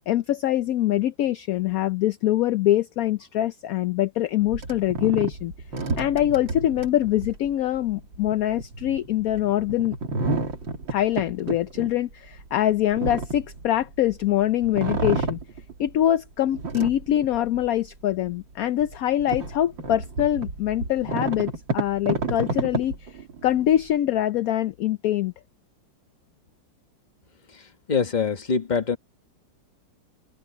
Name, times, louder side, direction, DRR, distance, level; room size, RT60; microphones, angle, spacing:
voice 1, 0.1-5.5 6.0-10.0 10.9-15.4 15.8-25.3, left 12 dB, 70° left, 0.9 m, -24 dB
sound 1, 4.4-14.2 14.6-16.0 16.5-17.8 18.3-18.4 18.8-23.9, right 3 dB, 80° right, 3.6 m, -31 dB
voice 2, 27.9-29.0, left 5 dB, 25° left, 1.3 m, -24 dB
omnidirectional pair, 2.0 m